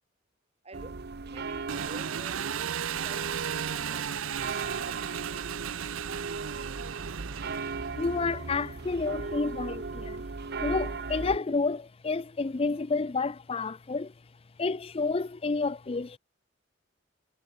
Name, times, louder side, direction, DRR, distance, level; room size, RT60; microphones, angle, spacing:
voice 1, 0.6-4.1 4.9-5.3, right 2 dB, 30° right, 2.4 m, -50 dB
sound 1, 0.7-11.4, right 4 dB, 50° right, 0.8 m, -37 dB
Engine, 1.7-8.2, right 8 dB, 80° right, 0.6 m, -35 dB
voice 2, 8.0-10.2 10.6-14.1 14.6-16.2, left 3 dB, 30° left, 0.5 m, -30 dB
head